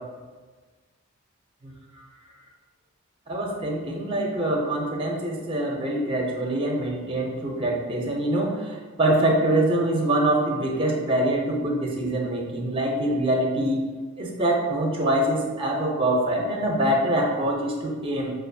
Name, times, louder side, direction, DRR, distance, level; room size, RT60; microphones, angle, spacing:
voice 1, 3.3-13.8 14.2-18.3, right 1 dB, 25° right, 0 dB, 0.6 m, -24 dB
5.1 x 2.4 x 2.6 m, 1.4 s
head